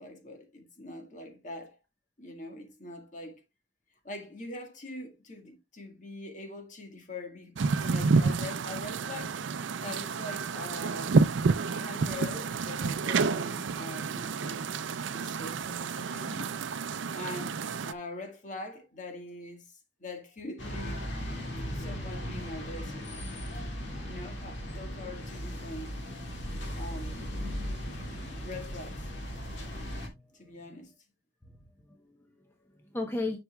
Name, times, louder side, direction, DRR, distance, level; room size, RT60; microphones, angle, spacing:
voice 1, 0.0-1.8 2.2-3.4 4.0-9.4 9.8-11.2 11.6-14.7 15.1-16.5 17.1-17.6 17.9-21.1 21.7-23.1 24.0-25.9 26.7-27.3 28.4-29.1 30.3-30.9, left 2 dB, 40° left, 1.6 m, -43 dB
sound 1, 7.6-17.9, right 4 dB, 75° right, 0.5 m, -29 dB
sound 2, 20.6-30.1, equal, 70° left, 2.2 m, -37 dB
voice 2, 27.8-28.7 29.6-30.5 31.4-33.4, left 2 dB, 10° left, 0.8 m, -39 dB
10.5 x 6.0 x 2.3 m
head